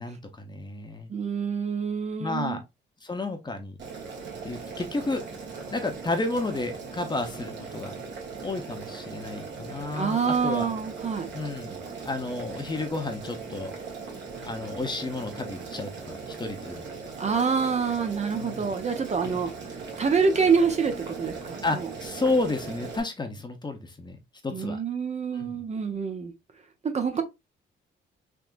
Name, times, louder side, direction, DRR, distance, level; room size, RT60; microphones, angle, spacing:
voice 1, 0.0-1.1 2.2-2.6 3.0-3.8 4.4-5.2 5.7-7.9 8.4-10.7 11.3-11.7 12.0-13.7 14.4-16.9 18.3-18.7 19.2-19.4 21.6-24.2 24.4-24.8 25.3-25.6, left 2 dB, 20° left, 0.8 m, -31 dB
voice 2, 1.1-2.6 10.0-11.3 17.2-19.5 20.0-21.9 24.5-26.3 26.8-27.2, right 5 dB, 35° right, 0.6 m, -26 dB
Boiling, 3.8-23.0, right 4 dB, 65° right, 1.4 m, -39 dB
3.5 x 2.7 x 2.5 m
cardioid pair, 90°, 20 cm